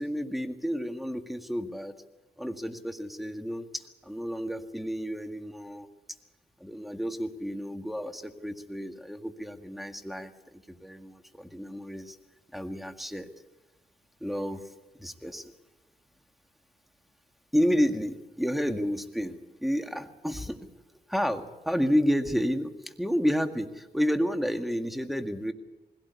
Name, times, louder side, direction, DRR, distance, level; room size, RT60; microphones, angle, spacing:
voice 1, 0.0-1.9 2.4-5.9 6.6-12.2 12.5-13.3 14.2-14.6 15.0-15.5 17.5-19.4 19.6-20.6 21.1-25.5, equal, ahead, 6 dB, 1.9 m, -30 dB
21.0 x 17.0 x 8.3 m, 1.1 s
cardioid pair, 65°, 18 cm